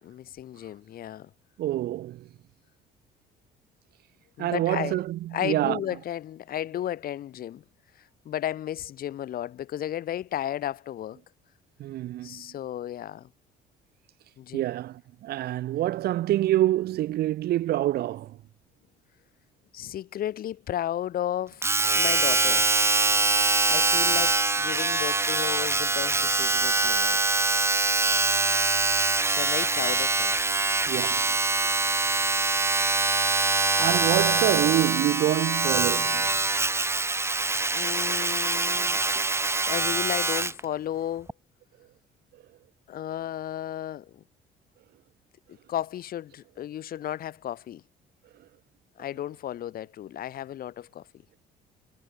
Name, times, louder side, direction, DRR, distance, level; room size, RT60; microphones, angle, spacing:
voice 1, 0.0-1.3 4.4-5.0 5.3-7.6 8.2-11.2 12.2-13.3 14.4-14.6 19.7-22.7 23.6-27.2 29.3-30.3 37.7-39.0 39.7-41.3 42.9-44.2 45.5-47.8 49.0-51.1, left 11 dB, 60° left, 4.9 m, -34 dB
voice 2, 1.6-2.3 4.4-5.8 11.8-12.5 14.5-18.4 30.9-31.4 33.8-36.4, right 14 dB, 70° right, 1.4 m, -26 dB
Domestic sounds home sounds, 21.6-40.6 41.3-41.4, right 3 dB, 15° right, 2.0 m, -24 dB
cardioid pair, 110°, 17 cm